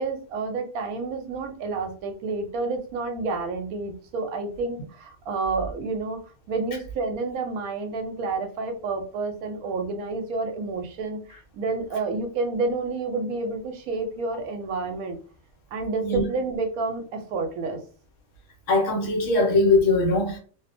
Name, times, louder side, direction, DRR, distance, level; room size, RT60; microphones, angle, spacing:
voice 1, 0.0-6.2 6.5-15.2 15.7-17.8, right 3 dB, 85° right, 1.0 m, -29 dB
voice 2, 18.7-20.4, left 2 dB, 65° left, 1.1 m, -21 dB
2.6 x 2.1 x 2.5 m
omnidirectional pair, 1.5 m